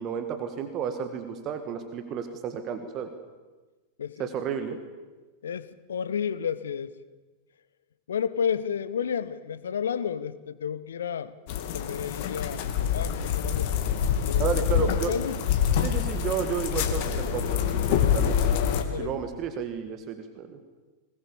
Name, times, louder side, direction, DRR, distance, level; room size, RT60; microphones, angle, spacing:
voice 1, 0.0-3.1 4.2-4.8 14.4-15.1 15.8-18.4 19.0-20.6, right 7 dB, 35° right, 8 dB, 1.8 m, -32 dB
voice 2, 4.0-4.3 5.4-6.9 8.1-11.3 11.7-13.7 14.2-15.4 18.9-19.2, left 7 dB, 65° left, 16 dB, 1.0 m, -31 dB
sound 1, 11.5-18.8, left 8 dB, 45° left, 2.3 m, -26 dB
22.5 x 20.5 x 7.2 m, 1.2 s
figure-of-eight pair, 90°, 0 cm